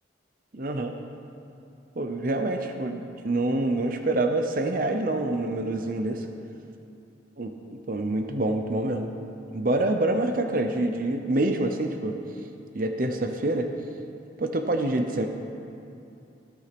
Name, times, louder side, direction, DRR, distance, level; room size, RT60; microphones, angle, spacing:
voice 1, 0.5-0.9 2.0-6.3 7.4-9.1 9.5-12.1 12.7-13.7 14.4-15.3, right 2 dB, 45° right, 5 dB, 0.7 m, -26 dB
14.0 x 9.8 x 6.0 m, 2.7 s
head